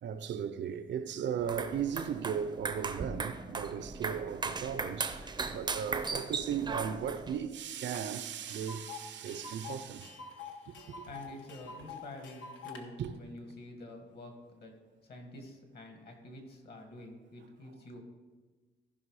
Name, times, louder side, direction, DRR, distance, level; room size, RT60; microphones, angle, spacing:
voice 1, 0.0-10.2 10.7-11.0 13.0-13.1, right 8 dB, 70° right, 0.6 m, -37 dB
sound 1, 1.4-7.4, right 4 dB, 20° right, 0.5 m, -37 dB
Tick, 7.9-8.0 8.3-12.8, left 5 dB, 85° left, 1.2 m, -47 dB
voice 2, 11.1-14.7 15.0-18.0, left 1 dB, 55° left, 1.9 m, -48 dB
14.5 x 5.6 x 4.8 m
wide cardioid pair, 170°, 19 cm